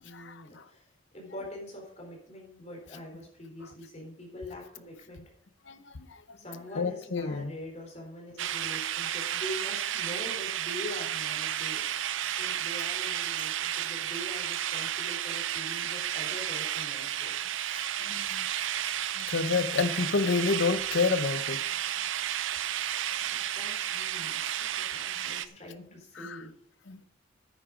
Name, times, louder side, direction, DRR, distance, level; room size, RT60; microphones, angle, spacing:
voice 1, 0.0-5.2 6.4-17.3 23.3-26.5, left 1 dB, 35° left, 0 dB, 3.9 m, -44 dB
voice 2, 6.8-7.5 18.1-18.4 19.2-21.6 26.2-26.4 26.9-27.0, left 4 dB, 65° left, 13 dB, 0.7 m, -28 dB
sound 1, 8.4-25.5, right 11 dB, 75° right, 0.6 m, -32 dB
9.7 x 8.7 x 5.1 m, 0.70 s
head